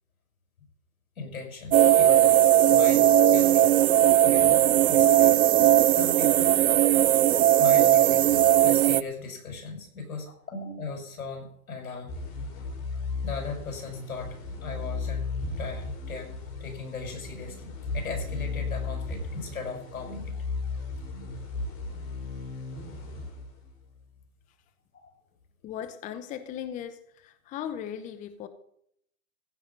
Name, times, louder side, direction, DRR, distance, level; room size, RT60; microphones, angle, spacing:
voice 1, 1.2-3.7 4.2-5.3 5.9-6.6 7.4-12.2 13.2-15.3 15.6-16.3 16.6-20.3 24.9-25.1, left 4 dB, 85° left, 2 dB, 6.8 m, -38 dB
sound 1, 1.7-9.0, right 12 dB, 85° right, 0.7 m, -19 dB
sound 2, 12.1-23.9, left 3 dB, 35° left, 5.1 m, -35 dB
voice 2, 25.6-28.5, left 9 dB, 20° left, 12 dB, 0.8 m, -37 dB
15.5 x 5.8 x 9.4 m, 0.71 s
hypercardioid pair, 140°, 42 cm